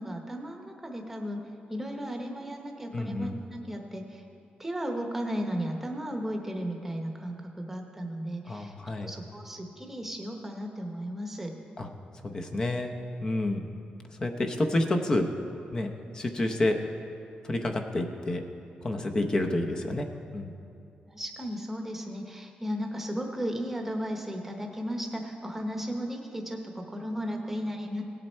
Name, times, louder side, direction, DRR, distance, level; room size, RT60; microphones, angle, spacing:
voice 1, 0.0-1.4 1.7-4.2 4.6-8.7 9.0-11.6 16.1-16.2 19.0-19.1 21.1-28.0, equal, 10° right, 2 dB, 1.0 m, -35 dB
voice 2, 2.9-3.4 8.5-9.1 11.8-11.9 12.2-12.9 13.2-13.8 14.2-15.3 15.7-15.9 16.1-16.8 17.4-18.4 18.8-20.1 20.3-20.5, left 1 dB, 25° left, 4 dB, 0.7 m, -29 dB
17.5 x 7.7 x 4.4 m, 2.6 s
wide cardioid pair, 180°, 3 cm